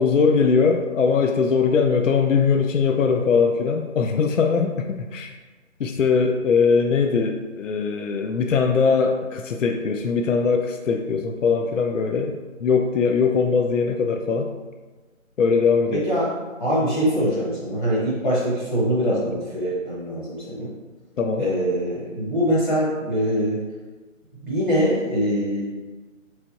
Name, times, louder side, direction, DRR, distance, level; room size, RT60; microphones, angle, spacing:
voice 1, 0.0-5.3 5.8-14.5 15.4-16.1 21.2-21.5, left 5 dB, 70° left, 4 dB, 0.5 m, -21 dB
voice 2, 15.9-16.3 16.6-20.7 21.4-23.6 24.4-25.6, equal, 35° left, -8 dB, 1.1 m, -23 dB
3.5 x 3.3 x 4.0 m, 1.3 s
figure-of-eight pair, 170°, 39 cm